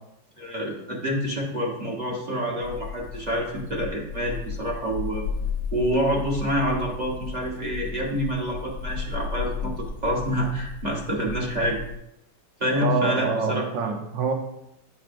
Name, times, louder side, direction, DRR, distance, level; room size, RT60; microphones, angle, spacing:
voice 1, 0.4-5.2 5.7-11.8 12.6-13.7, equal, 25° right, -2 dB, 1.0 m, -27 dB
sound 1, 2.6-11.9, left 6 dB, 70° left, 0.9 m, -34 dB
voice 2, 12.8-14.3, right 5 dB, 50° right, 4 dB, 1.0 m, -26 dB
9.7 x 5.8 x 2.6 m, 0.82 s
omnidirectional pair, 2.1 m